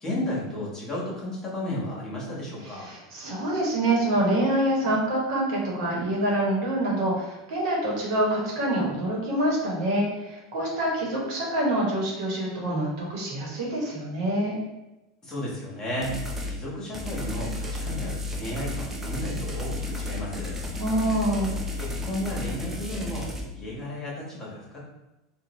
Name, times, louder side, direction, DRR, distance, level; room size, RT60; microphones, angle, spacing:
voice 1, 0.0-2.9 15.2-16.2 16.5-20.6 21.7-23.3 23.5-24.8, left 1 dB, 25° left, -5 dB, 1.2 m, -33 dB
voice 2, 2.6-14.6 20.8-21.5, right 1 dB, 70° right, -3 dB, 1.0 m, -26 dB
sound 1, 16.0-16.5 16.9-23.4, left 1 dB, 15° right, 0.5 m, -32 dB
2.5 x 2.2 x 3.0 m, 1.0 s
hypercardioid pair, 100°, 2 cm